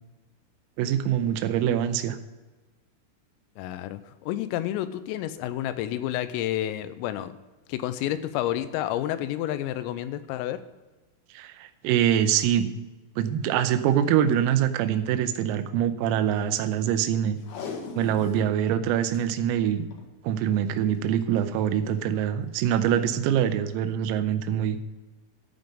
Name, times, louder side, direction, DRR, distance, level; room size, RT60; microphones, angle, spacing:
voice 1, 0.8-2.2 11.3-12.7 13.2-17.4 18.0-19.8 20.2-24.8, right 10 dB, 90° right, 10 dB, 3.4 m, -24 dB
voice 2, 3.6-7.3 7.7-10.6, left 12 dB, 90° left, 12 dB, 3.3 m, -30 dB
Packing tape duct tape, 17.4-18.5 18.9-19.0 19.1-19.2 19.8-20.1 21.1-21.4 22.0-22.1, left 5 dB, 65° left, 2.7 m, -38 dB
14.0 x 5.3 x 6.3 m, 1.2 s
omnidirectional pair, 6.0 m